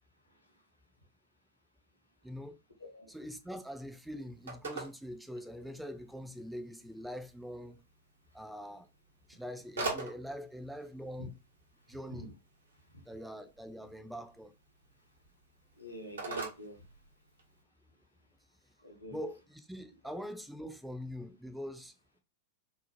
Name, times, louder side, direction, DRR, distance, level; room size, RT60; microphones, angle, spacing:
voice 1, 2.2-2.6 3.1-7.8 8.3-8.9 9.3-11.4 11.9-12.3 13.1-14.5 19.1-21.9, equal, 5° right, 0.4 m, -43 dB
Telephone, 3.1-17.6, right 3 dB, 70° right, 0.7 m, -46 dB
voice 2, 15.8-16.8 18.8-19.2, left 1 dB, 85° left, 0.7 m, -46 dB
2.7 x 2.0 x 2.8 m
figure-of-eight pair, 95°, 0 cm